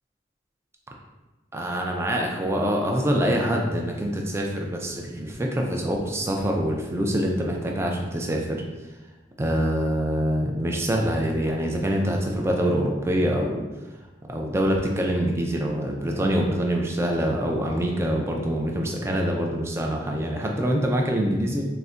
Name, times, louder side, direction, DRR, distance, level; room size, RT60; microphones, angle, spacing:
voice 1, 1.5-8.6 9.4-13.6 14.3-21.6, equal, 15° right, 0 dB, 0.3 m, -25 dB
3.8 x 2.1 x 2.4 m, 1.2 s
head